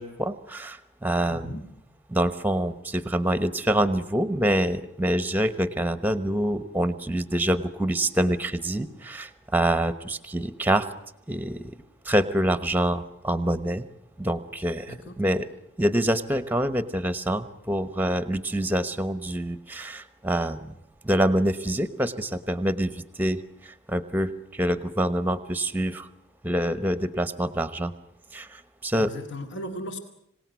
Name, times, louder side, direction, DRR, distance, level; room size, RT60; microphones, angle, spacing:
voice 1, 0.0-1.6 2.1-10.9 11.3-11.7 12.0-13.9 14.2-15.5 15.8-20.7 21.0-26.1 26.4-27.9 28.3-29.1, right 1 dB, 10° right, 13 dB, 1.0 m, -26 dB
voice 2, 1.2-1.6 14.9-15.2 28.9-30.0, equal, 55° left, 6 dB, 2.2 m, -37 dB
26.0 x 18.0 x 9.5 m, 0.78 s
head